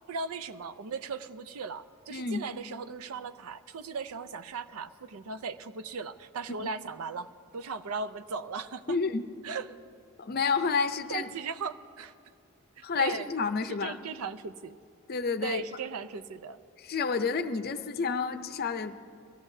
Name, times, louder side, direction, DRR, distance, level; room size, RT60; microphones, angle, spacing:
voice 1, 0.1-9.0 9.4-9.7 11.1-12.1 12.8-13.3 13.8-14.8 15.4-16.6, right 5 dB, 90° right, 12 dB, 0.5 m, -37 dB
voice 2, 2.1-2.4 6.6-6.7 8.9-9.3 10.2-11.3 12.8-14.0 15.1-15.6 16.8-18.9, left 5 dB, 45° left, 10 dB, 0.6 m, -30 dB
23.0 x 15.5 x 2.7 m, 2.5 s
head